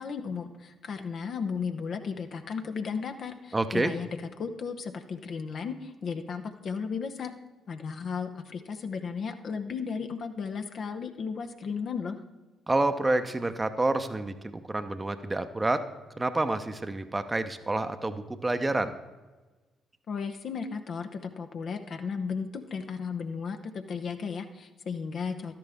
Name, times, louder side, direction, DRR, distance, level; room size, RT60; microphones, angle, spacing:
voice 1, 0.0-7.3 7.7-12.2 20.1-25.6, left 5 dB, 55° left, 6 dB, 0.8 m, -35 dB
voice 2, 3.5-3.9 12.7-15.8 16.2-18.9, right 2 dB, 20° right, 9 dB, 0.8 m, -28 dB
12.5 x 10.5 x 3.5 m, 1.2 s
hypercardioid pair, 45°, 0 cm